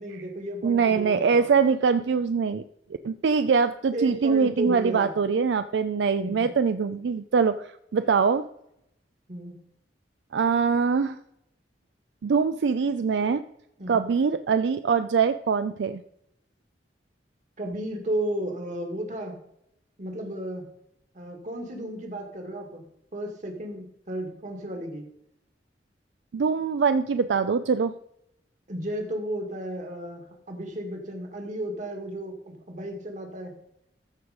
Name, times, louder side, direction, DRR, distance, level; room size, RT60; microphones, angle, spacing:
voice 1, 0.0-1.6 3.9-5.2 6.2-6.5 9.3-9.6 13.8-14.1 17.6-19.3 20.0-20.6 21.1-22.8 23.1-25.0 28.7-33.5, right 1 dB, 45° right, 3 dB, 2.0 m, -33 dB
voice 2, 0.6-2.6 3.0-8.5 10.3-11.2 12.2-13.4 13.9-16.0 26.3-27.9, right 5 dB, 75° right, 11 dB, 0.4 m, -23 dB
14.0 x 4.8 x 5.1 m, 0.78 s
head